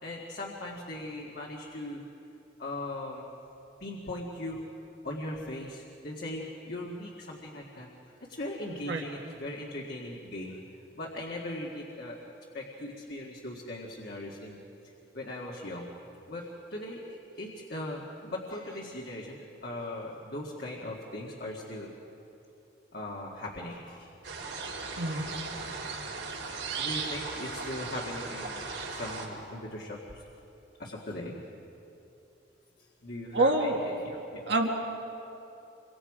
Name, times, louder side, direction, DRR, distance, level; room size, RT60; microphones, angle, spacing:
voice 1, 0.0-2.0 2.6-3.3 3.8-4.6 5.0-7.9 8.2-10.6 11.0-12.2 12.5-14.6 15.1-15.9 16.3-21.9 22.9-24.1 26.8-30.2 30.8-31.4 33.0-34.4, left 1 dB, 55° left, -2 dB, 1.9 m, -39 dB
sound 1, 24.2-29.3, right 4 dB, 80° right, 5.0 m, -37 dB
voice 2, 25.0-25.4 33.3-33.8 34.5-34.7, right 2 dB, 65° right, 2 dB, 2.0 m, -26 dB
27.5 x 24.0 x 5.0 m, 3.0 s
head